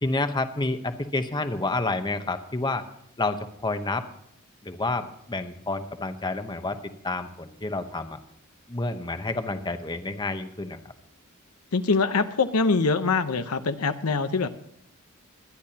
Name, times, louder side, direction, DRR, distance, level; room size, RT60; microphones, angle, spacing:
voice 1, 0.0-2.9 3.2-4.0 4.6-8.2 8.7-10.8, left 2 dB, 20° left, 8 dB, 0.9 m, -29 dB
voice 2, 11.7-14.5, left 4 dB, 85° left, 9 dB, 0.9 m, -24 dB
22.5 x 10.5 x 2.9 m, 0.74 s
head